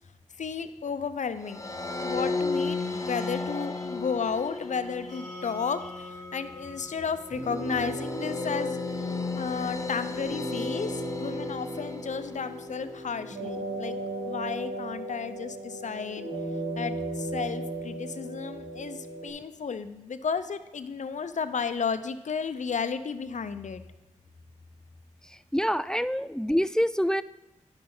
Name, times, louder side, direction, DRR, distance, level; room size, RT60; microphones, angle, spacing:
voice 1, 0.4-1.6 2.0-13.9 14.2-16.3 16.8-23.8, left 6 dB, 65° left, 11 dB, 0.6 m, -33 dB
sound 1, 1.4-12.8, left 3 dB, 25° left, 0.9 m, -35 dB
sound 2, 5.1-18.1, left 2 dB, 90° right, 2.5 m, -51 dB
sound 3, 7.3-19.3, right 1 dB, 55° right, 2.4 m, -36 dB
voice 2, 25.5-27.2, equal, 5° left, 15 dB, 0.3 m, -26 dB
10.5 x 6.0 x 3.8 m, 0.97 s
cardioid pair, 40°, 13 cm